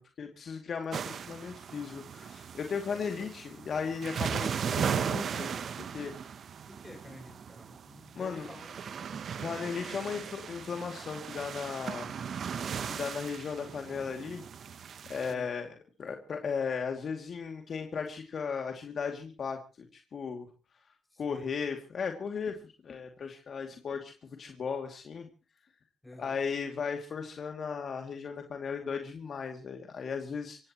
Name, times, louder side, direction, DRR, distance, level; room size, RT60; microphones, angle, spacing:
voice 1, 0.0-4.5 4.7-6.2 8.1-8.5 9.4-12.1 12.9-14.4 15.1-20.5 21.2-25.3 26.2-30.6, left 6 dB, 50° left, 4 dB, 2.5 m, -36 dB
sound 1, 0.9-15.3, right 7 dB, 55° right, 1.0 m, -37 dB
voice 2, 2.9-3.3 6.3-6.4 6.7-9.2 15.3-15.5 21.1-21.5 26.0-26.4, left 2 dB, 10° left, 4 dB, 7.2 m, -51 dB
26.5 x 16.5 x 3.1 m, 0.36 s
cardioid pair, 90°, 0 cm